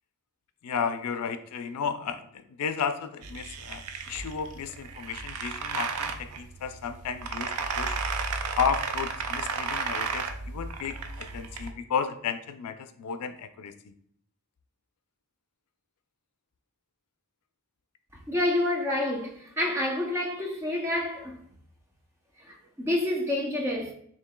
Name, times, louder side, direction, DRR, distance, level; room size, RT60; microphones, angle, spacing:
voice 1, 0.6-8.0 8.6-13.9, left 6 dB, 85° left, 0.4 m, -33 dB
sound 1, 3.2-11.7, right 4 dB, 80° right, 0.4 m, -33 dB
voice 2, 18.3-21.4 22.4-23.9, left 1 dB, 10° right, 0.6 m, -28 dB
6.7 x 2.7 x 2.2 m
head